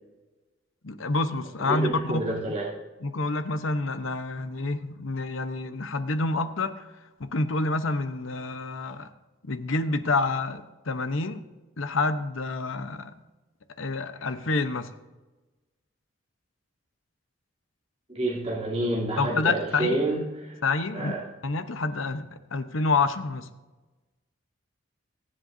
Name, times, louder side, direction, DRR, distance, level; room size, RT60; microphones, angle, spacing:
voice 1, 0.8-2.4 3.0-6.9 7.2-9.1 9.4-11.4 11.8-13.1 13.8-14.9 19.2-20.0 20.6-21.2 21.4-23.5, left 3 dB, 80° left, 10 dB, 0.9 m, -28 dB
voice 2, 1.6-2.7 18.1-20.6 20.9-21.2, right 1 dB, 30° right, -6 dB, 3.0 m, -28 dB
22.5 x 7.8 x 2.7 m, 1.2 s
head